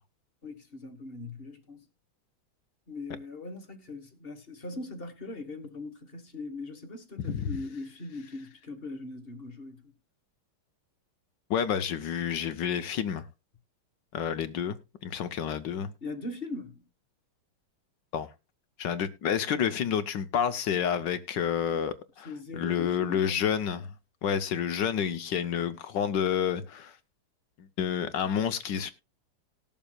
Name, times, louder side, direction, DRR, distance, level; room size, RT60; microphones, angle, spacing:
voice 1, 0.4-1.8 2.9-9.8 16.0-16.8 22.2-23.5, left 2 dB, 30° left, 1.4 m, -40 dB
voice 2, 7.2-7.6 11.5-13.2 14.1-14.8 15.0-15.9 18.1-18.3 18.8-23.8 24.2-27.0 27.8-28.9, left 8 dB, 65° left, 1.4 m, -29 dB
19.5 x 7.1 x 2.3 m
omnidirectional pair, 2.3 m